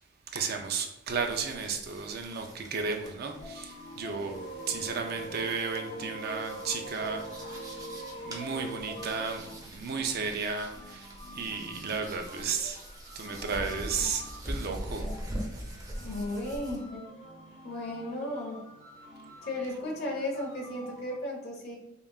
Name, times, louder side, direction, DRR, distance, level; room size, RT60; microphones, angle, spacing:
voice 1, 0.3-4.4 4.7-7.8 8.2-12.8 13.2-15.1, right 5 dB, 55° right, 4 dB, 0.5 m, -34 dB
sound 1, 1.1-16.8, equal, 20° right, 0.8 m, -43 dB
sound 2, 3.3-21.2, left 1 dB, 85° left, 1.4 m, -48 dB
sound 3, 4.3-9.3, right 1 dB, 20° left, 0.8 m, -42 dB
voice 2, 16.0-17.1 17.6-18.6 19.4-21.8, left 1 dB, 55° left, -1 dB, 1.1 m, -35 dB
5.2 x 2.4 x 2.4 m, 0.96 s
head